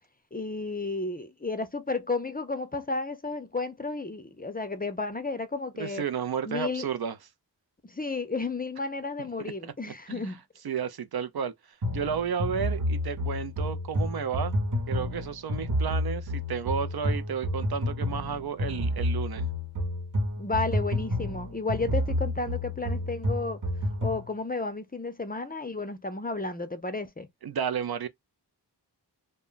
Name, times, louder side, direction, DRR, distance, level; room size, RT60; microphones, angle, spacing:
voice 1, 0.3-6.0 6.5-6.9 7.8-10.4 20.4-23.6 24.0-27.3, left 3 dB, 20° left, 0.5 m, -32 dB
voice 2, 5.7-7.2 9.4-9.7 10.1-10.4 10.6-14.6 14.9-19.4 27.4-28.1, right 7 dB, 65° right, 0.5 m, -32 dB
sound 1, 11.8-24.3, left 1 dB, 50° right, 1.0 m, -30 dB
2.1 x 2.1 x 3.7 m
wide cardioid pair, 55°, 41 cm